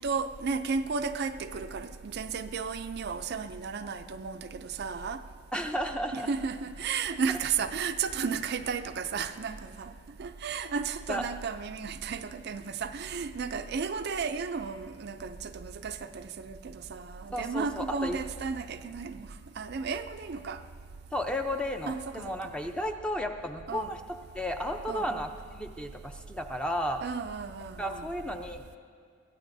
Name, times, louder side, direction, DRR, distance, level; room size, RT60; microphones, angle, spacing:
voice 1, 0.0-5.2 6.1-9.9 10.2-19.3 19.6-20.6 21.9-22.2 23.7-24.0 24.9-25.1 27.0-28.1, right 5 dB, 45° right, 8 dB, 0.4 m, -34 dB
voice 2, 5.5-6.3 11.1-11.2 17.3-18.2 21.1-24.0 24.3-27.0 27.8-28.8, equal, 5° left, 4 dB, 0.5 m, -33 dB
23.0 x 16.0 x 2.7 m, 2.1 s
head